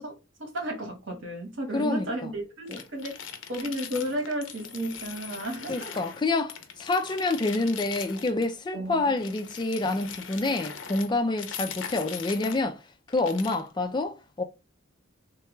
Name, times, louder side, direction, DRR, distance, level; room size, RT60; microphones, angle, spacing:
voice 1, 0.0-3.2 3.5-5.9 8.7-9.1, right 1 dB, 75° right, 1.2 m, -33 dB
voice 2, 1.7-2.3 2.7-2.8 5.7-12.8 13.1-14.4, left 2 dB, 25° left, 0.3 m, -28 dB
sound 1, 2.7-6.2 6.5-8.5 9.2-12.6 13.1-13.7, left 8 dB, 70° left, 0.6 m, -41 dB
3.2 x 2.3 x 3.0 m
head